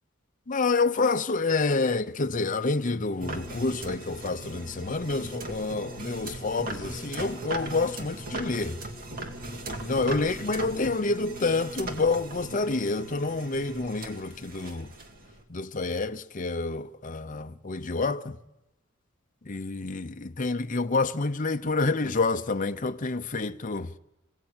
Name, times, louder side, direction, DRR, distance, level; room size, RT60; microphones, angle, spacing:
voice 1, 0.5-8.8 9.8-14.9 15.5-18.4 19.4-23.9, left 3 dB, 40° left, 0.8 m, -28 dB
sound 1, 3.2-15.4, right 2 dB, 45° right, 2.4 m, -39 dB
26.5 x 16.5 x 8.9 m
head